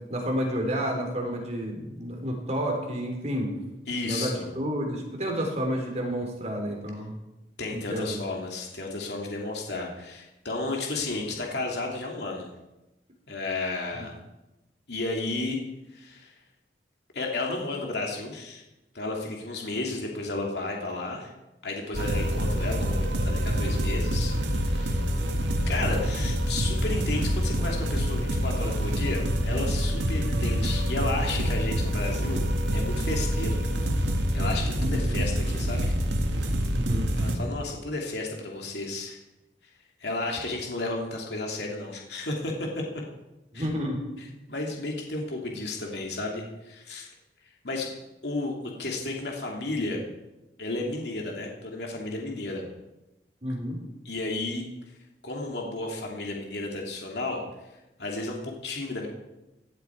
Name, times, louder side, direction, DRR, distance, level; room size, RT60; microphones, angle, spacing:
voice 1, 0.1-3.5 4.0-7.2 7.7-8.2 13.9-14.0 34.8-35.3 36.7-37.1 43.5-44.0 53.4-53.8, equal, 40° right, 2 dB, 3.7 m, -30 dB
voice 2, 3.9-4.5 7.6-12.5 13.3-14.1 14.9-15.6 15.9-16.3 17.1-18.6 18.9-21.3 21.6-25.1 25.7-33.6 34.0-35.9 37.2-39.2 40.0-42.8 43.5-43.7 44.2-47.1 47.6-50.0 50.6-52.6 54.0-54.7 55.2-57.4 58.0-59.1, left 2 dB, 65° left, 0 dB, 2.8 m, -33 dB
sound 1, 21.9-37.4, equal, 90° right, 2.1 m, -26 dB
17.0 x 12.0 x 4.7 m, 0.98 s
head